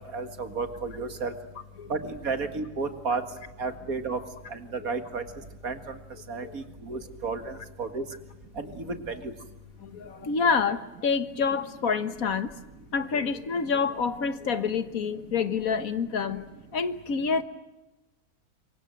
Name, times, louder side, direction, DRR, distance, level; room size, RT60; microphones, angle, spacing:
voice 1, 0.1-1.3 1.9-3.2 3.6-4.2 4.5-4.6 4.8-5.2 5.6-5.8 6.3-8.0 8.6-9.0, right 4 dB, 70° right, 8 dB, 2.3 m, -32 dB
voice 2, 9.8-12.5 12.9-16.4 16.7-17.4, left 5 dB, 70° left, 11 dB, 1.7 m, -27 dB
26.0 x 24.0 x 7.7 m, 1.0 s
omnidirectional pair, 1.6 m